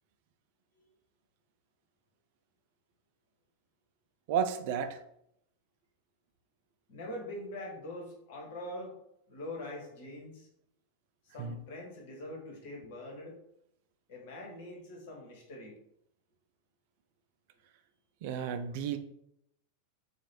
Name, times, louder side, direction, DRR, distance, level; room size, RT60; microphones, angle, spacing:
voice 1, 4.3-5.0 11.4-11.6 18.2-19.0, right 7 dB, 50° right, 9 dB, 0.3 m, -32 dB
voice 2, 6.9-9.0 9.3-10.5 11.2-13.4 14.1-15.8, left 1 dB, 50° left, -1 dB, 1.3 m, -43 dB
3.0 x 2.4 x 4.3 m, 0.76 s
figure-of-eight pair, 90°, 0 cm